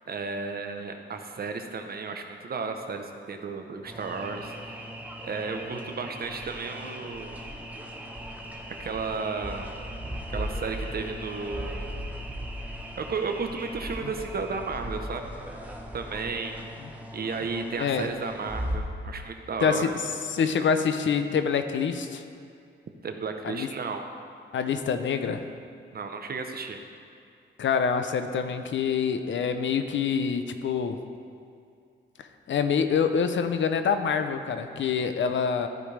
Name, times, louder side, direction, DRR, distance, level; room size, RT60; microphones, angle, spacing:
voice 1, 0.1-4.8 5.2-7.4 8.8-9.7 10.3-11.8 13.0-15.2 15.5-15.6 15.9-16.6 17.1-19.9 23.0-24.0 25.9-26.8, right 4 dB, 50° right, 5 dB, 0.8 m, -33 dB
sound 1, 3.8-18.8, equal, 5° right, 0.9 m, -38 dB
voice 2, 17.8-18.1 19.6-20.0 20.3-22.2 23.4-23.7 24.5-25.4 27.6-31.0 32.2-35.7, left 6 dB, 65° left, 8 dB, 0.6 m, -26 dB
14.0 x 5.1 x 3.3 m, 2.5 s
cardioid pair, 100°, 20 cm